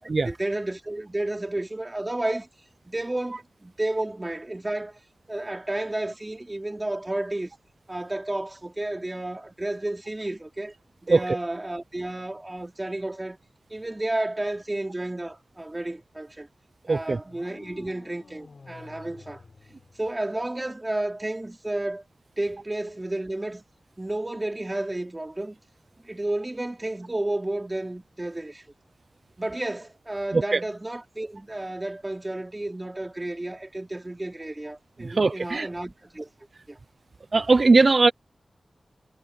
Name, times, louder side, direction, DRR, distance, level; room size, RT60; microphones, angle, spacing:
voice 1, 0.0-2.5 2.8-5.0 5.3-7.5 7.9-10.7 11.0-13.4 13.7-16.5 16.9-19.4 20.0-22.0 22.4-23.6 24.0-25.6 26.0-28.6 29.4-36.3 36.7-36.8, right 1 dB, 25° right, 4.9 m, -31 dB
sound 1, 17.3-20.4, left 4 dB, 65° left, 7.3 m, -49 dB
voice 2, 35.2-35.7 37.3-38.1, right 3 dB, 60° right, 0.7 m, -19 dB
cardioid pair, 50°, 0 cm